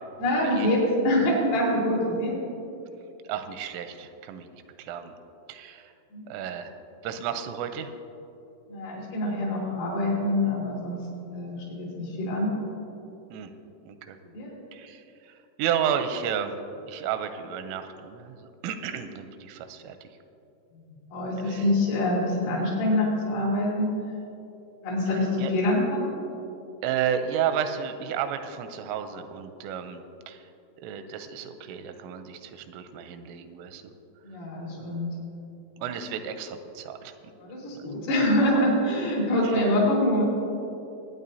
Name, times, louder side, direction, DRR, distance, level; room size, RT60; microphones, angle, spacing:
voice 1, 0.2-2.4 6.1-6.3 8.7-11.0 11.3-12.5 14.3-14.5 20.7-24.0 24.8-26.1 34.2-35.1 37.4-40.2, left 1 dB, 80° left, -5 dB, 5.4 m, -25 dB
voice 2, 3.2-5.1 5.5-5.9 6.3-6.8 7.0-7.9 13.3-13.5 13.8-14.2 14.7-20.1 21.4-21.7 25.1-25.5 26.8-30.5 30.8-33.9 34.7-35.0 35.8-37.1 37.7-37.9 39.4-39.6, right 8 dB, 85° right, 8 dB, 3.2 m, -32 dB
23.0 x 9.3 x 2.7 m, 2.8 s
omnidirectional pair, 5.7 m